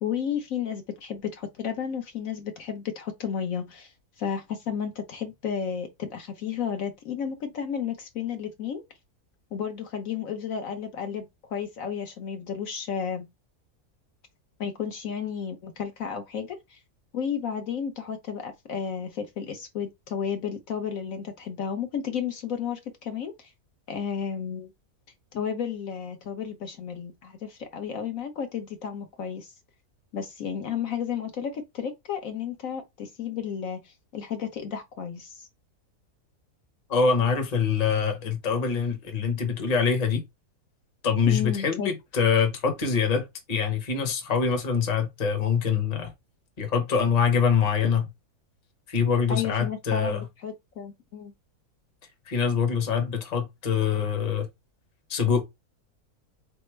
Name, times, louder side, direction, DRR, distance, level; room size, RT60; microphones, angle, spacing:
voice 1, 0.0-8.8 9.5-13.3 14.6-16.8 17.1-23.5 23.9-24.7 25.3-29.5 30.1-35.5 41.3-41.9 49.3-51.3, left 7 dB, 65° left, 1.1 m, -32 dB
voice 2, 36.9-40.2 41.0-46.1 46.6-48.1 48.9-50.2 52.3-54.5 55.1-55.4, left 6 dB, 30° left, 0.9 m, -24 dB
4.0 x 3.4 x 3.1 m
omnidirectional pair, 1.6 m